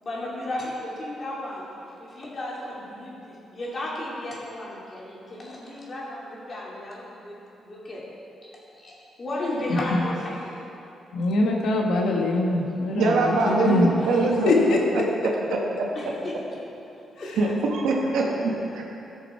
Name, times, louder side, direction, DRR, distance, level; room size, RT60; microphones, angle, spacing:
voice 1, 0.0-1.7 2.0-8.1 8.8-10.5 12.6-12.7 13.2-14.3 14.6-14.8 15.9-16.4 17.2-17.3, left 1 dB, 35° left, -5 dB, 2.7 m, -34 dB
voice 2, 9.7-10.0 11.1-13.9 14.5-15.1, left 2 dB, 80° left, 0 dB, 1.3 m, -23 dB
voice 3, 12.9-14.5 14.9-15.0 15.5-15.9 17.3-18.8, right 3 dB, 85° right, -1 dB, 1.6 m, -23 dB
15.0 x 6.3 x 4.5 m, 2.8 s
cardioid pair, 110°, 0 cm